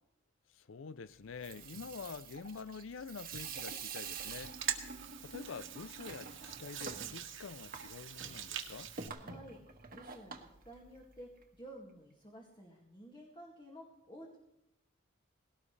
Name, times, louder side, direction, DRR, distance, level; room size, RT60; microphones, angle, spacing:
voice 1, 0.5-4.6 5.2-8.9, left 5 dB, 75° left, 0.5 m, -47 dB
Water tap faucet / Sink (filling or washing), 1.2-11.4, right 5 dB, 45° right, 1.5 m, -48 dB
Hands, 4.0-9.1, right 9 dB, 70° right, 1.7 m, -43 dB
voice 2, 9.1-14.4, right 1 dB, 25° left, 2.2 m, -53 dB
19.0 x 17.5 x 3.3 m
head